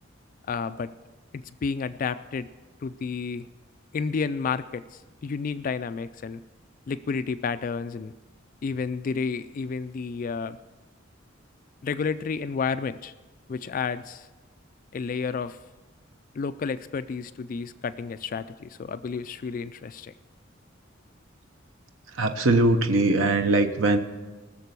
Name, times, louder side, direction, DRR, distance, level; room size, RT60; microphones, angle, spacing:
voice 1, 0.5-0.9 1.3-2.5 2.8-3.5 3.9-6.4 6.9-8.1 8.6-10.6 11.8-13.1 13.5-14.3 14.9-15.6 16.3-20.1, left 5 dB, 45° left, 12 dB, 0.3 m, -31 dB
voice 2, 22.1-24.0, right 2 dB, 80° right, 6 dB, 0.8 m, -21 dB
19.5 x 6.8 x 6.7 m, 1.2 s
head